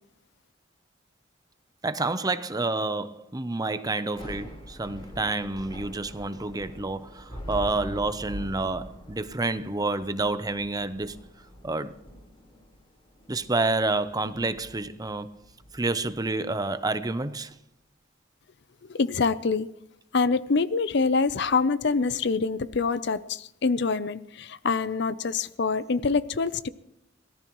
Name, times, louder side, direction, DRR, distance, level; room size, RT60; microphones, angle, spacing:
voice 1, 1.8-11.2 11.6-12.0 13.3-15.3 15.7-17.6, right 2 dB, 20° right, 0.7 m, -29 dB
Thunder / Rain, 4.0-17.1, equal, 25° left, 4.2 m, -44 dB
voice 2, 18.9-19.7 20.1-26.7, left 4 dB, 60° left, 0.6 m, -25 dB
23.5 x 18.0 x 3.1 m
head